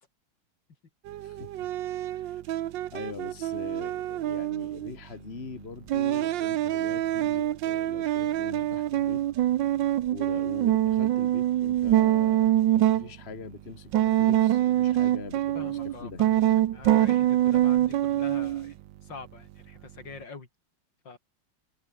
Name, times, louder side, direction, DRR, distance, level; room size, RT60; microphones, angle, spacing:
sound 1, 1.1-4.9 5.9-13.1 13.9-18.7, right 13 dB, 75° right, 1.5 m, -25 dB
voice 1, 1.2-1.7 2.1-2.6 2.9-9.2 10.1-12.5 12.7-16.2, left 4 dB, 35° left, 2.1 m, -42 dB
voice 2, 15.5-16.4 16.7-20.5 21.0-21.2, left 4 dB, 70° left, 4.0 m, -44 dB
omnidirectional pair, 2.1 m